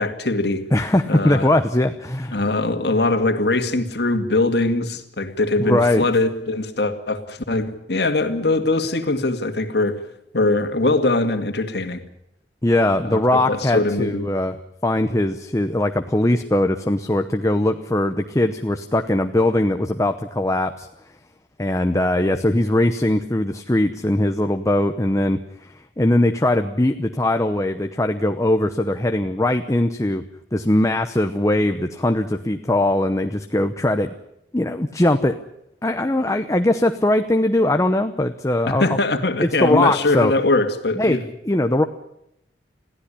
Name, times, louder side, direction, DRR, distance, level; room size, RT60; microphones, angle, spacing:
voice 1, 0.0-0.6 1.1-1.5 2.3-10.0 10.3-12.0 13.0-14.3 38.7-41.2, left 2 dB, 65° left, 2.1 m, -21 dB
voice 2, 0.7-2.4 5.6-6.1 12.6-14.5 14.8-20.9 21.6-30.2 30.5-34.1 34.5-35.4 35.8-39.0 39.4-40.3 41.0-41.8, left 1 dB, 20° left, 0.9 m, -20 dB
22.0 x 15.0 x 10.0 m
head